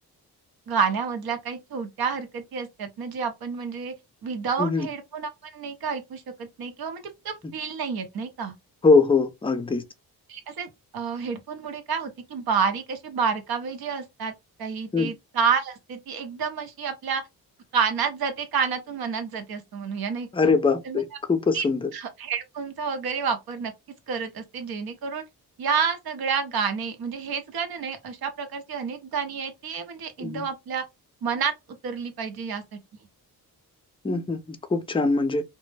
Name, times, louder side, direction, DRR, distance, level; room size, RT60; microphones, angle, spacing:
voice 1, 0.7-3.9 4.2-8.5 10.3-14.3 14.6-17.2 17.7-20.5 20.8-21.0 21.5-21.7 21.9-23.7 24.1-25.2 25.6-30.8 31.2-31.5 31.8-32.8, right 6 dB, 70° right, 0.8 m, -29 dB
voice 2, 8.8-9.8 14.9-15.1 20.3-21.9 30.2-30.4 34.0-34.4 34.7-35.4, left 4 dB, 15° left, 0.4 m, -22 dB
2.2 x 2.0 x 3.1 m
cardioid pair, 80°, 38 cm